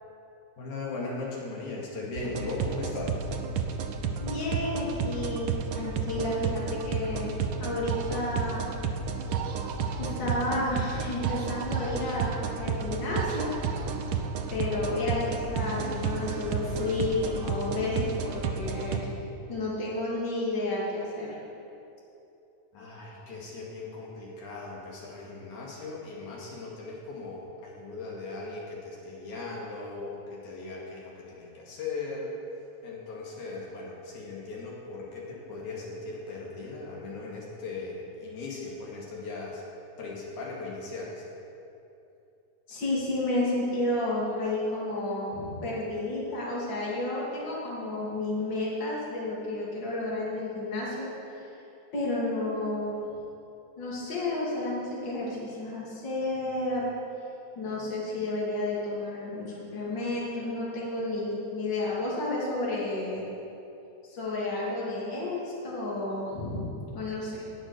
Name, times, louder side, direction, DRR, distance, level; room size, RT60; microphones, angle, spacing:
voice 1, 0.6-3.1 22.7-32.3 32.8-39.6 40.0-41.2, left 3 dB, 85° left, -4 dB, 3.5 m, -38 dB
sound 1, 2.2-19.0, right 5 dB, 85° right, 1.1 m, -32 dB
voice 2, 4.2-8.7 10.0-13.6 14.5-19.1 19.5-21.4 42.7-51.1 51.3-51.5 51.9-53.0 53.8-56.9 57.6-63.2 64.0-67.5, left 2 dB, 40° left, -6 dB, 3.2 m, -31 dB
18.5 x 6.3 x 6.6 m, 2.8 s
omnidirectional pair, 3.3 m